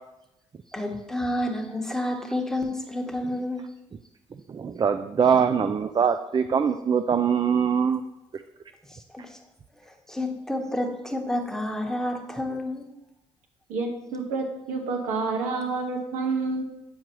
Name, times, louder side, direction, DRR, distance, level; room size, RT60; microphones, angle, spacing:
voice 1, 0.7-3.6 8.9-9.4 9.8-12.9, left 1 dB, 5° left, 2 dB, 1.2 m, -30 dB
voice 2, 4.5-8.0, right 7 dB, 35° right, 8 dB, 0.4 m, -23 dB
voice 3, 13.7-16.6, right 3 dB, 80° right, 1 dB, 1.2 m, -28 dB
8.6 x 4.6 x 3.0 m, 0.90 s
supercardioid pair, 60°, 13 cm